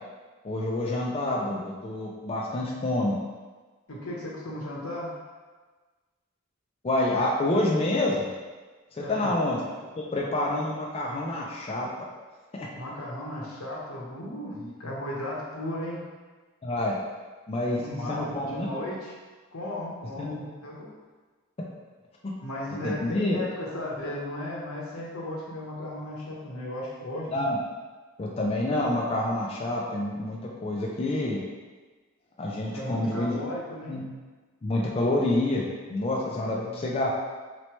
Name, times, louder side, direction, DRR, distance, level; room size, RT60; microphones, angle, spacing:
voice 1, 0.4-3.2 6.8-8.3 8.9-9.6 10.0-11.9 12.5-12.7 16.6-17.0 17.5-17.8 18.1-18.8 20.2-20.4 22.8-23.4 27.3-27.6 28.2-31.4 32.4-33.4 33.9-34.0 34.6-37.1, left 1 dB, 30° left, -3 dB, 0.4 m, -27 dB
voice 2, 3.9-5.2 9.0-9.3 12.7-16.0 17.7-19.1 19.5-20.9 22.4-27.3 32.7-34.0 36.4-36.9, left 1 dB, 85° left, -4 dB, 1.0 m, -35 dB
4.1 x 3.2 x 3.0 m, 1.4 s
head